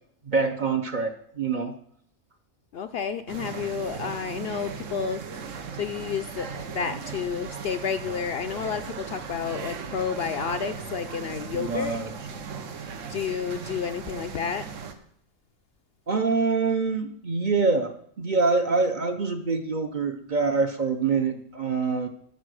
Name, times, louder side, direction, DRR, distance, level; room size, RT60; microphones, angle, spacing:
voice 1, 0.2-1.7 11.5-12.1 16.1-17.9 18.2-22.1, right 4 dB, 45° right, 7 dB, 0.8 m, -25 dB
voice 2, 2.7-5.2 5.5-12.0 12.8-14.7, left 7 dB, 65° left, 9 dB, 0.7 m, -31 dB
sound 1, 3.3-14.9, right 6 dB, 75° right, 1.3 m, -37 dB
12.0 x 6.1 x 6.4 m, 0.68 s
omnidirectional pair, 1.3 m